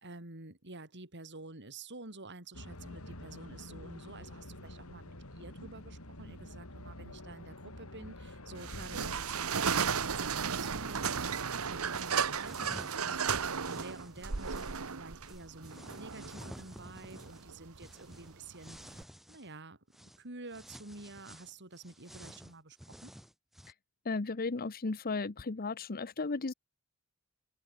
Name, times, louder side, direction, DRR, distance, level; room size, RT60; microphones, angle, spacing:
voice 1, 0.0-19.0 19.3-23.1, right 2 dB, 55° right, 4.2 m, -49 dB
sound 1, 2.5-9.2, left 1 dB, 90° left, 6.1 m, -47 dB
sound 2, 8.6-19.0, right 6 dB, 85° right, 1.2 m, -35 dB
sound 3, 12.3-14.8 15.2-19.5 19.9-20.2 20.5-23.7, equal, ahead, 6.3 m, -52 dB
voice 2, 24.0-26.5, left 3 dB, 45° left, 0.8 m, -35 dB
head